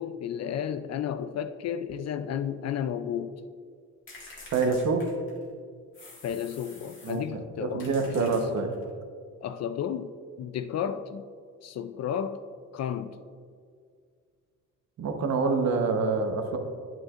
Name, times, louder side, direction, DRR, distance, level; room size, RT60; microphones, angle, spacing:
voice 1, 0.0-3.4 6.2-8.5 9.4-11.3 11.6-12.4 12.7-13.2, left 8 dB, 60° left, 0.5 m, -33 dB
sound 1, 4.1-5.5 5.9-7.3 7.8-8.9, left 2 dB, 40° left, 1.9 m, -48 dB
voice 2, 4.5-5.0 7.0-7.2 7.6-8.7 15.0-16.6, right 4 dB, 65° right, 1.1 m, -26 dB
9.2 x 9.0 x 2.5 m
cardioid pair, 90°, 30 cm